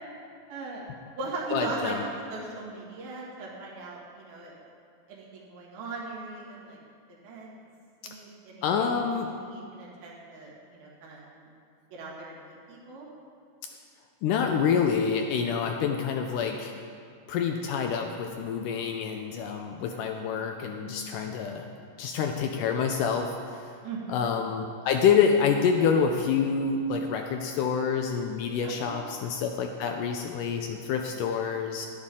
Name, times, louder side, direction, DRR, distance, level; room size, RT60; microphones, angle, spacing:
voice 1, 0.5-0.8 1.2-4.5 5.1-6.8 7.1-7.5 8.0-8.9 9.2-11.5 11.9-13.1 15.8-16.1 19.9-20.0 23.8-24.2 28.6-29.0, right 3 dB, 90° right, -4 dB, 3.6 m, -39 dB
voice 2, 1.5-2.0 8.6-9.3 14.2-16.7 17.3-21.7 22.0-23.6 24.1-31.9, left 6 dB, 80° left, 4 dB, 1.9 m, -27 dB
11.5 x 10.5 x 3.7 m, 2.3 s
omnidirectional pair, 4.1 m